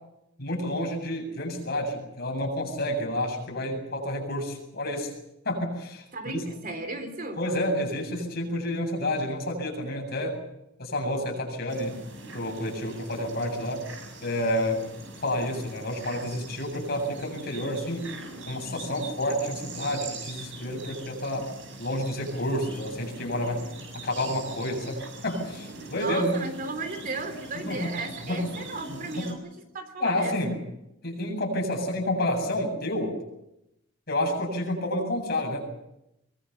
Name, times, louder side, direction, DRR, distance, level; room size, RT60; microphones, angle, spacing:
voice 1, 0.4-5.1 5.4-6.4 7.4-10.4 10.8-12.0 12.3-13.9 14.2-14.8 15.2-18.1 18.5-21.5 21.8-23.6 23.9-26.4 27.7-27.9 28.3-28.5 28.9-29.3 30.0-30.5 31.0-33.2 34.1-35.7, left 1 dB, 55° left, 1 dB, 7.9 m, -29 dB
voice 2, 6.1-7.4 25.9-29.5 29.7-30.6, right 2 dB, 45° right, 7 dB, 3.3 m, -35 dB
sound 1, 11.7-29.3, right 3 dB, 75° right, 6.7 m, -43 dB
23.0 x 23.0 x 7.0 m, 0.87 s
head